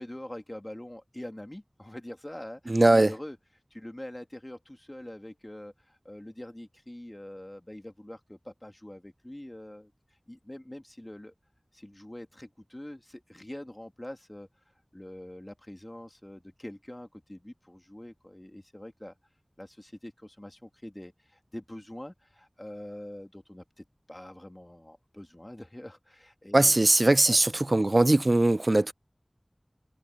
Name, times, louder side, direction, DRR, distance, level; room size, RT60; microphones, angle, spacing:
voice 1, 0.0-3.4 3.7-9.9 10.3-11.3 11.7-14.5 14.9-19.1 19.6-26.8 27.3-27.4, left 1 dB, 25° left, 2.8 m, -44 dB
voice 2, 2.7-3.1 26.5-28.9, right 2 dB, 55° right, 0.3 m, -21 dB
wide cardioid pair, 45°, 0 cm